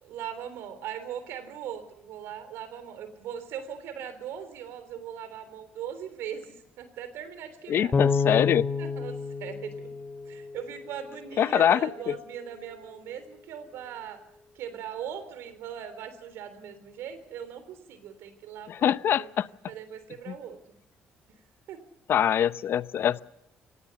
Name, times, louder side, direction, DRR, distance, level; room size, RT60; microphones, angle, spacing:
voice 1, 0.0-7.9 8.8-9.9 10.2-14.2 14.5-19.3 19.7-20.8 21.7-21.8, right 9 dB, 75° right, 12 dB, 3.4 m, -40 dB
voice 2, 7.7-8.7 11.4-12.2 18.7-19.5 20.3-20.4 22.1-23.2, left 9 dB, 60° left, 16 dB, 0.7 m, -24 dB
Bass guitar, 7.9-10.9, left 5 dB, 40° left, 2.9 m, -29 dB
24.0 x 18.5 x 7.0 m, 0.79 s
supercardioid pair, 60°, 4 cm